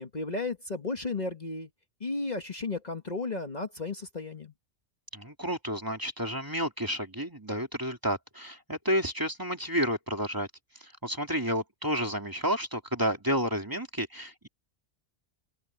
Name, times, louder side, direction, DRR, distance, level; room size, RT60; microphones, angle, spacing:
voice 1, 0.0-1.7 2.0-4.5, left 3 dB, 40° left, 1.6 m, -34 dB
voice 2, 5.1-10.5 10.8-14.5, equal, 15° right, 2.6 m, -31 dB
open air
omnidirectional pair, 1.2 m